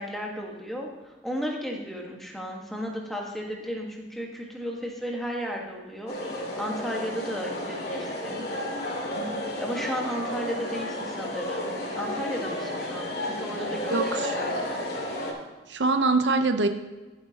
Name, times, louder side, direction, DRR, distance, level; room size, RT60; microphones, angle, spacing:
voice 1, 0.0-8.4 9.6-14.0 14.3-14.8, equal, ahead, -1 dB, 1.5 m, -34 dB
sound 1, 6.1-15.3, left 1 dB, 60° left, 2.3 m, -32 dB
voice 2, 13.9-14.4 15.7-16.7, right 3 dB, 90° right, 8 dB, 0.8 m, -23 dB
14.5 x 8.0 x 2.9 m, 1.2 s
head